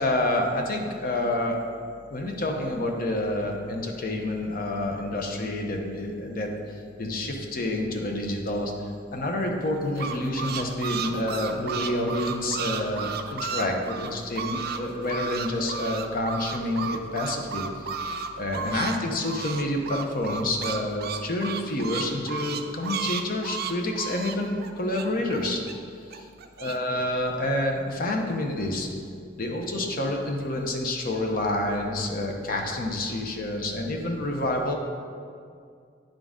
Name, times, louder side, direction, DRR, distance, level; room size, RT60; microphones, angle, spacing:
voice 1, 0.0-1.6 2.1-18.0 18.4-25.6 26.1-26.3 26.6-28.9 29.4-34.7, left 1 dB, 50° left, 2 dB, 0.8 m, -28 dB
sound 1, 9.6-14.8 15.0-19.0 19.2-25.7 26.1-26.8, right 6 dB, 55° right, 0.4 m, -33 dB
10.0 x 3.8 x 3.7 m, 2.3 s
head